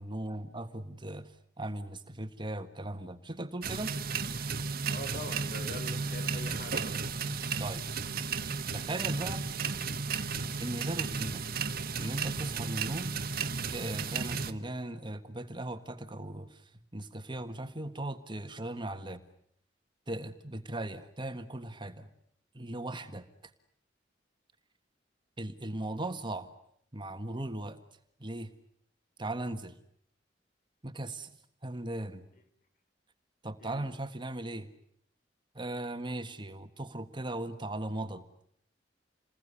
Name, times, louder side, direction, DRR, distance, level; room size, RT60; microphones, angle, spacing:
voice 1, 0.0-1.3 1.6-3.9 7.6-7.8 8.7-9.5 10.6-11.4 12.0-13.1 13.7-16.6 16.9-19.2 20.1-22.1 22.5-23.3 25.4-26.5 26.9-27.8 28.2-28.5 29.2-29.7 30.8-31.3 31.6-32.3 33.4-34.7 35.5-38.2, right 1 dB, 25° right, 9 dB, 1.6 m, -38 dB
sound 1, 3.6-14.5, right 5 dB, 55° right, 1.6 m, -34 dB
voice 2, 4.9-7.0 33.6-33.9, left 2 dB, 50° left, 8 dB, 5.2 m, -44 dB
29.0 x 21.0 x 9.9 m, 0.70 s
head